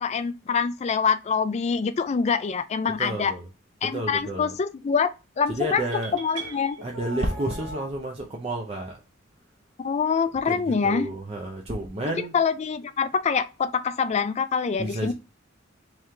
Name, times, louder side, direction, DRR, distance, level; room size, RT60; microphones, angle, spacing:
voice 1, 0.0-3.3 3.8-5.1 5.4-5.8 6.1-6.8 9.8-11.1 12.0-15.1, left 6 dB, 35° left, 0.3 m, -25 dB
voice 2, 3.0-3.5 3.8-4.6 5.5-6.5 6.8-9.0 10.5-12.3 14.8-15.1, right 1 dB, 30° right, 0.5 m, -31 dB
sound 1, 5.9-7.9, right 1 dB, 65° right, 0.8 m, -39 dB
3.3 x 3.0 x 3.6 m
head